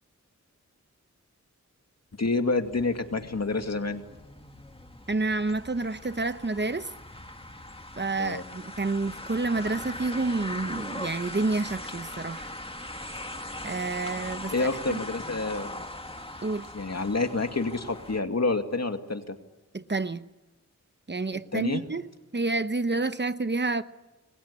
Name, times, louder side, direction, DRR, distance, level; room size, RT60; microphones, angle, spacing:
voice 1, 2.2-4.0 8.2-8.4 14.5-15.8 16.7-19.3 21.5-21.8, left 3 dB, 55° left, 2.4 m, -28 dB
sound 1, 2.6-18.2, left 1 dB, 20° left, 2.1 m, -40 dB
voice 2, 5.1-6.9 8.0-12.5 13.6-15.0 16.4-16.7 19.7-20.3 21.1-22.0 22.3-23.8, right 3 dB, 35° right, 1.0 m, -29 dB
28.5 x 23.0 x 8.5 m
wide cardioid pair, 70°, 31 cm